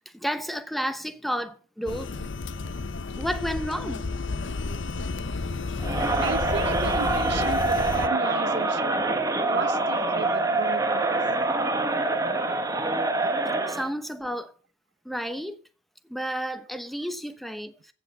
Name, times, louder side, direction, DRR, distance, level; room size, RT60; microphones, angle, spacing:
voice 1, 0.1-2.1 3.2-4.1 13.7-14.5 15.0-15.6 16.1-17.9, equal, ahead, 0.8 m, -31 dB
sound 1, 1.9-8.1, left 3 dB, 70° left, 0.7 m, -31 dB
Crowd, 5.8-13.9, right 2 dB, 20° right, 1.3 m, -25 dB
voice 2, 6.2-11.2 13.6-13.7, right 4 dB, 60° right, 0.6 m, -35 dB
15.5 x 6.7 x 6.8 m
head